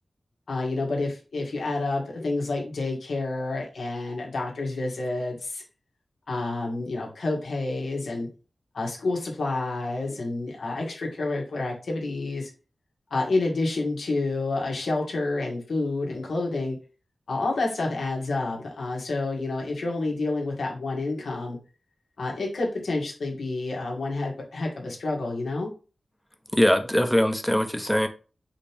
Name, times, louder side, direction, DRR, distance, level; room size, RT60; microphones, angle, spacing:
voice 1, 0.5-5.6 6.3-8.3 8.7-12.5 13.1-16.8 17.3-21.6 22.2-25.7, left 2 dB, 90° left, 1.5 m, -29 dB
voice 2, 26.5-28.1, equal, 5° left, 0.7 m, -22 dB
4.9 x 3.0 x 3.5 m
wide cardioid pair, 85°, 0 cm